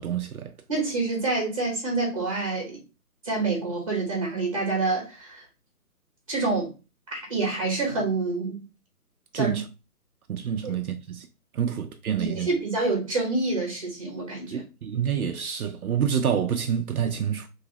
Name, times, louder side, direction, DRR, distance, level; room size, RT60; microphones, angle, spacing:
voice 1, 0.0-0.5 9.3-9.6 10.3-11.3 11.5-12.5 14.5-17.5, right 8 dB, 70° right, 0.5 m, -27 dB
voice 2, 0.7-2.8 3.2-5.4 6.3-6.7 7.1-8.6 9.3-9.6 10.6-10.7 12.2-14.6, right 3 dB, 20° right, 1.0 m, -27 dB
3.1 x 2.9 x 2.9 m
hypercardioid pair, 175°, 46 cm